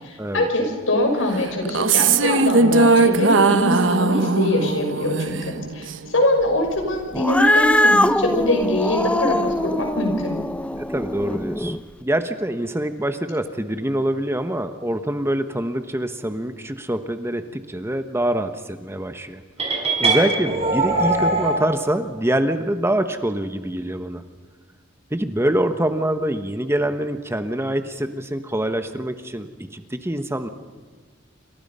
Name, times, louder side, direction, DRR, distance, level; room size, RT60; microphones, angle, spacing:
voice 1, 0.0-10.4, left 1 dB, 80° left, 3 dB, 6.0 m, -23 dB
sound 1, 1.6-6.1, right 3 dB, 70° right, 0.9 m, -19 dB
Cat, 7.1-11.8, left 1 dB, 5° left, 0.7 m, -21 dB
voice 2, 10.8-19.4 19.7-24.2 25.1-30.5, right 1 dB, 15° right, 8 dB, 1.1 m, -25 dB
sound 2, 19.6-21.6, right 2 dB, 30° right, 5.9 m, -21 dB
28.5 x 26.0 x 5.6 m, 1.5 s
head